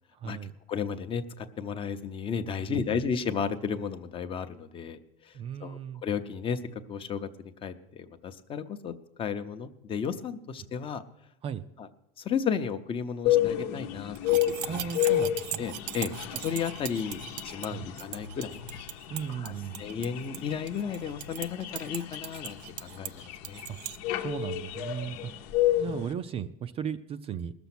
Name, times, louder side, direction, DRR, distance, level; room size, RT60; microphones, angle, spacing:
voice 1, 0.1-0.5 2.7-3.0 5.3-6.0 11.4-11.6 14.6-15.6 16.3-16.4 17.7-17.9 19.1-19.9 23.7-23.8 24.2-25.3 25.7-27.5, right 7 dB, 30° right, 11 dB, 0.4 m, -36 dB
voice 2, 0.7-7.3 7.6-8.9 9.2-11.0 11.8-11.9 12.2-14.7 15.6-16.1 16.4-18.6 19.4-23.6, left 6 dB, 25° left, 9 dB, 0.7 m, -33 dB
sound 1, 13.3-26.1, left 13 dB, 75° left, 0.9 m, -31 dB
sound 2, 14.2-24.0, right 14 dB, 90° right, 0.5 m, -40 dB
19.5 x 7.0 x 6.0 m, 0.85 s
cardioid pair, 150°, 20 cm